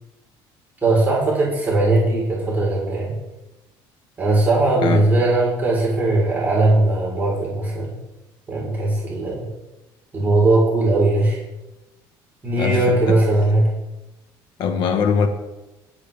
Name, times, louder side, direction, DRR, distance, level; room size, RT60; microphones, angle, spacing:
voice 1, 0.8-3.1 4.2-7.9 8.5-9.5 10.1-11.4 12.4-13.7, right 2 dB, 20° right, -5 dB, 4.2 m, -19 dB
voice 2, 14.6-15.3, left 6 dB, 55° left, 6 dB, 1.5 m, -20 dB
21.5 x 8.2 x 3.5 m, 1.0 s
cardioid pair, 125°, 9 cm